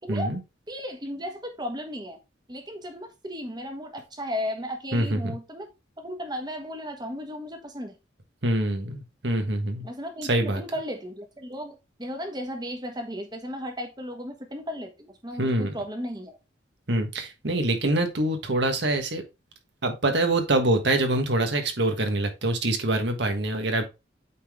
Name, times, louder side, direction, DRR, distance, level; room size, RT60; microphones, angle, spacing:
voice 1, 0.1-0.4 4.9-5.3 8.4-9.8 10.3-10.6 15.4-15.7 16.9-19.2 19.8-23.8, right 1 dB, 60° right, 5 dB, 1.4 m, -25 dB
voice 2, 0.7-2.2 2.5-5.7 6.0-7.9 9.8-16.4, equal, 20° right, 4 dB, 1.3 m, -35 dB
8.4 x 3.8 x 3.6 m, 0.25 s
head